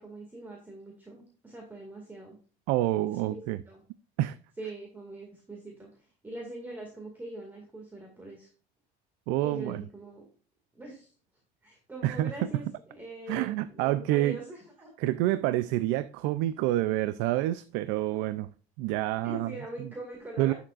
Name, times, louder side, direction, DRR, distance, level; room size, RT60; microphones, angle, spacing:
voice 1, 0.0-2.4 3.0-3.8 4.6-8.5 9.4-10.2 10.7-11.1 11.6-14.9 19.2-20.5, right 2 dB, 10° right, 0 dB, 2.2 m, -43 dB
voice 2, 2.7-3.6 4.2-4.4 9.3-9.8 12.0-12.3 13.3-14.4 15.0-18.5 18.8-19.5 20.4-20.5, right 15 dB, 85° right, 14 dB, 0.5 m, -27 dB
11.5 x 7.1 x 2.5 m, 0.40 s
cardioid pair, 150°, 18 cm